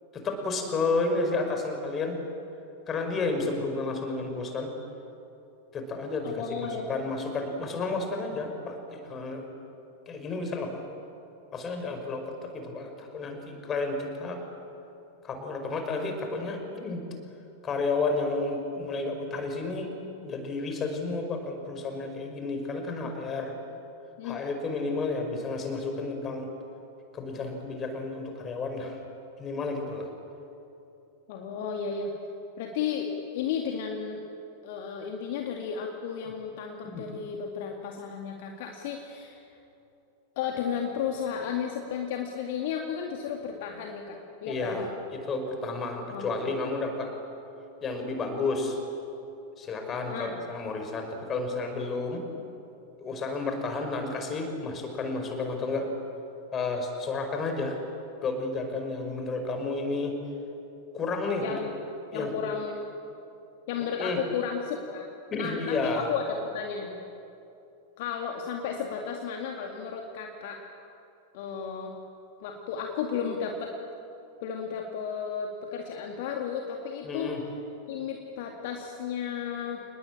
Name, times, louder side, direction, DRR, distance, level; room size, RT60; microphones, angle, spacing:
voice 1, 0.1-2.2 2.9-4.7 5.7-9.5 10.1-10.8 11.5-14.4 15.2-17.0 17.6-19.9 20.2-23.5 24.2-26.5 27.1-29.0 29.4-30.1 36.8-37.0 44.4-47.1 47.8-48.8 49.6-52.2 53.0-55.9 56.5-57.8 58.2-60.2 60.9-61.6 62.1-62.5 64.0-64.2 65.3-66.1 77.0-77.4, left 3 dB, 25° left, 5 dB, 5.3 m, -31 dB
voice 2, 6.2-6.9 23.0-23.1 24.2-24.4 31.3-32.1 32.6-34.2 34.6-39.4 40.4-44.9 46.1-46.3 50.1-50.4 61.4-61.7 62.1-62.8 63.7-67.0 68.0-70.6 71.3-71.9 72.4-73.7 74.4-77.3 77.9-79.8, left 7 dB, 50° left, 2 dB, 2.3 m, -33 dB
29.0 x 20.0 x 8.8 m, 2.8 s
figure-of-eight pair, 90°, 0 cm